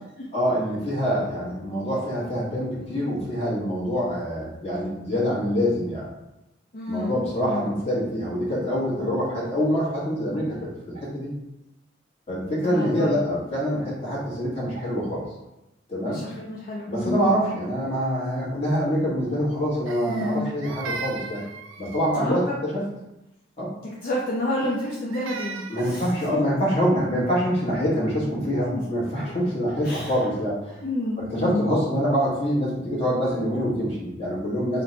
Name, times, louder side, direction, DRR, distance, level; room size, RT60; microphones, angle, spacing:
voice 1, 0.3-6.1 6.9-11.3 12.3-15.2 15.9-16.2 16.9-21.4 21.8-22.8 23.6-23.7 25.7-30.8 31.2-34.8, equal, 30° left, -7 dB, 1.2 m, -25 dB
voice 2, 6.7-7.2 7.4-7.7 12.7-13.2 16.0-17.4 20.1-20.6 22.1-22.6 24.0-26.4 28.7-28.8 29.2-29.3 29.8-30.1 30.8-31.7, left 1 dB, 50° left, -4 dB, 0.5 m, -29 dB
Crying sobbing, 19.9-22.4 24.6-26.0, right 4 dB, 90° right, 0.3 m, -37 dB
3.2 x 2.1 x 3.9 m, 0.92 s
head